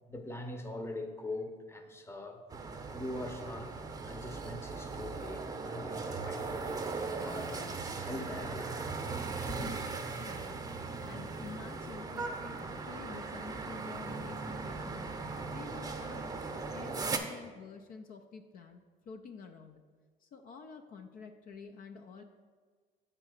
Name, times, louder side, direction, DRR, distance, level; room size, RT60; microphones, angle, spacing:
voice 1, 0.1-2.4 2.9-3.8 4.0-6.8 7.2-8.8 9.5-9.8, left 1 dB, 15° left, 6 dB, 0.8 m, -42 dB
sound 1, 2.5-17.2, right 4 dB, 20° right, 0.8 m, -39 dB
voice 2, 10.2-10.7 11.1-15.1 15.5-16.3 16.7-18.8 19.1-19.8 20.2-22.2, left 5 dB, 55° left, 6 dB, 0.5 m, -49 dB
7.4 x 3.8 x 6.4 m, 1.5 s
cardioid pair, 110°, 17 cm